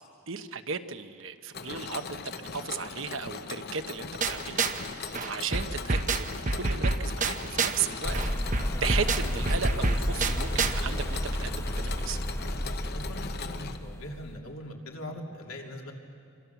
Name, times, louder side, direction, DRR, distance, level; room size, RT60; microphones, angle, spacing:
voice 1, 0.3-2.2 2.5-12.2, right 6 dB, 65° right, 9 dB, 1.0 m, -35 dB
Mechanisms, 1.5-13.8, left 5 dB, 45° left, 0.9 m, -40 dB
sound 1, 4.2-4.9 5.1-7.9 8.1-10.8, right 3 dB, 35° right, 0.8 m, -29 dB
sound 2, 8.0-14.4, equal, 15° left, 0.9 m, -32 dB
voice 2, 12.6-15.9, left 1 dB, 75° left, 1 dB, 2.9 m, -41 dB
26.5 x 25.0 x 7.1 m, 2.3 s
head